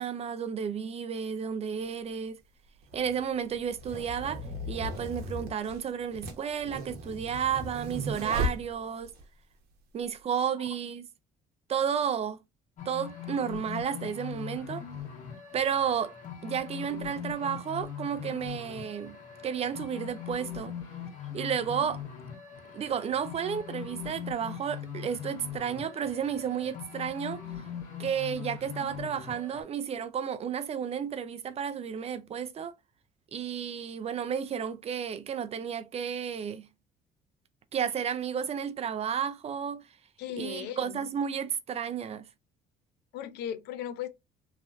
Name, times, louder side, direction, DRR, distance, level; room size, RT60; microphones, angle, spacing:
voice 1, 0.0-2.4 2.9-9.1 9.9-11.1 11.7-12.4 12.9-14.8 15.5-16.1 16.4-19.2 19.4-20.7 21.3-22.0 22.7-27.4 28.0-32.7 33.3-36.7 37.7-39.9 40.4-42.3, right 8 dB, 40° right, 0.4 m, -32 dB
sound 1, 1.8-1.9 2.8-9.2, right 1 dB, 70° right, 0.9 m, -36 dB
sound 2, 12.8-29.6, left 8 dB, 50° left, 1.5 m, -41 dB
voice 2, 40.2-41.0 43.1-44.1, left 10 dB, 80° left, 0.5 m, -37 dB
3.1 x 2.7 x 2.4 m
cardioid pair, 110°, 17 cm